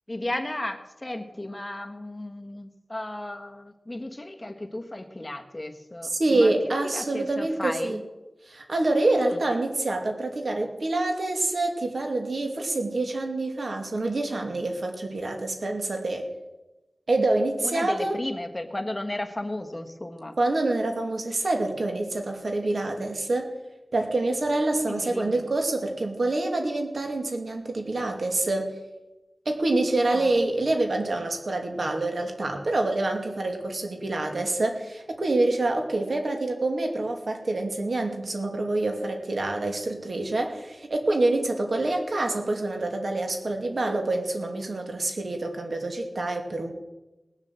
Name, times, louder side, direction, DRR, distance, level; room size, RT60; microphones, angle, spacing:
voice 1, 0.1-6.5 6.8-8.0 9.2-9.4 17.6-20.4 24.9-25.4 30.0-30.4, left 1 dB, 20° left, 5 dB, 1.4 m, -34 dB
voice 2, 6.0-8.0 8.5-16.3 17.1-18.2 20.4-23.5 23.9-28.8 29.5-46.7, right 2 dB, 70° right, 3 dB, 2.5 m, -26 dB
19.0 x 7.4 x 7.7 m, 1.0 s
wide cardioid pair, 85°, 0 cm